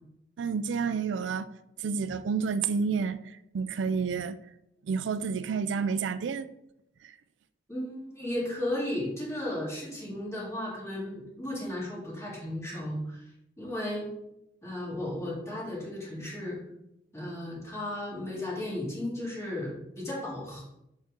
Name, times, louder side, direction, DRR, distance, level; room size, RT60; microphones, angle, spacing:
voice 1, 0.4-1.5 1.8-4.4 4.8-6.5 7.0-7.1, right 5 dB, 85° right, 0.4 m, -30 dB
voice 2, 7.7-13.3 13.6-14.1 14.6-16.6 17.1-20.6, left 1 dB, 15° left, 2.2 m, -35 dB
7.3 x 4.2 x 3.7 m
head